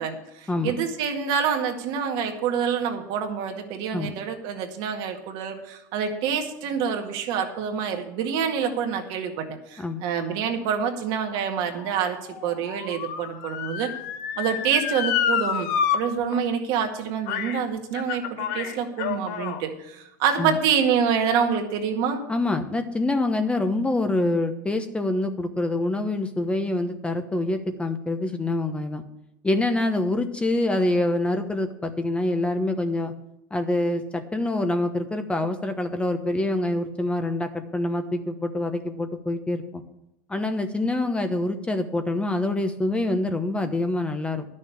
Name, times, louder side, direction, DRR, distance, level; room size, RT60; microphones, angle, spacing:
voice 1, 0.0-13.9 14.4-22.2, right 7 dB, 65° right, 4 dB, 1.9 m, -27 dB
Motor vehicle (road) / Siren, 10.8-16.0 16.3-16.4 17.3-17.6 17.9-19.6 20.3-20.4, left 8 dB, 75° left, 1.3 m, -29 dB
voice 2, 22.3-29.0 29.4-33.1 33.5-39.8 40.3-44.5, left 2 dB, 10° left, 8 dB, 1.0 m, -26 dB
11.0 x 6.5 x 8.3 m, 0.84 s
supercardioid pair, 105°, 9 cm